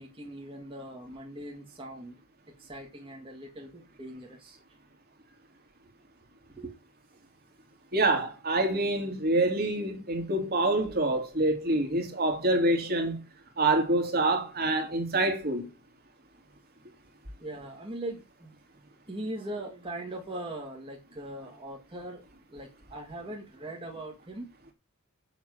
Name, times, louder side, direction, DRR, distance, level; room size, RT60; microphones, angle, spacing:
voice 1, 0.0-2.2 2.6-4.6 6.6-6.8 17.4-18.5 19.1-22.2 22.5-24.5, right 1 dB, 25° right, 2.2 m, -40 dB
voice 2, 7.9-13.2 13.6-15.7, right 2 dB, 45° right, 3.0 m, -26 dB
7.3 x 7.0 x 7.8 m
head